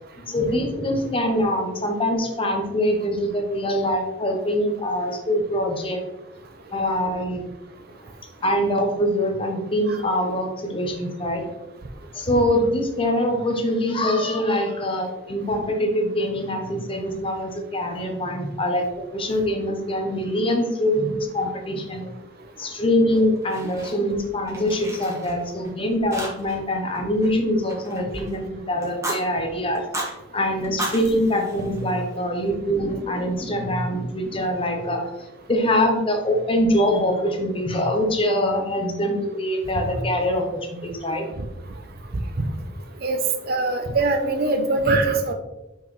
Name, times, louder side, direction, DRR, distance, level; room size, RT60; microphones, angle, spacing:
voice 1, 0.3-6.0 6.7-7.4 8.4-11.4 12.1-22.1 22.6-29.8 30.3-35.1 35.5-41.3, left 1 dB, 25° left, 3 dB, 0.9 m, -24 dB
Fire, 23.1-24.2 24.5-25.7 26.1-26.7 26.9-28.3 28.8-29.2 29.7-30.1 30.6-32.2, right 1 dB, 15° right, 1.3 m, -34 dB
voice 2, 43.5-45.3, right 2 dB, 50° right, 6 dB, 0.7 m, -22 dB
5.8 x 5.5 x 3.2 m, 1.0 s
head